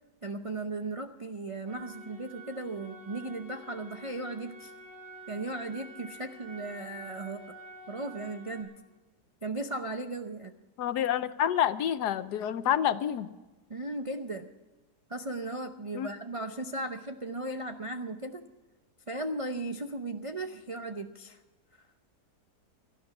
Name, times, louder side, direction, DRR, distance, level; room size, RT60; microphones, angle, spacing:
voice 1, 0.2-4.7 5.3-7.5 7.9-8.7 9.4-10.5 13.7-14.5 15.1-18.4 19.1-21.4 21.8-21.9, right 2 dB, 50° right, 5 dB, 0.4 m, -36 dB
sound 1, 1.7-8.6, right 1 dB, 35° left, 6.4 m, -48 dB
voice 2, 10.8-13.3 15.9-16.1, left 10 dB, 80° left, 13 dB, 1.3 m, -28 dB
17.5 x 12.0 x 6.0 m, 1.2 s
omnidirectional pair, 1.8 m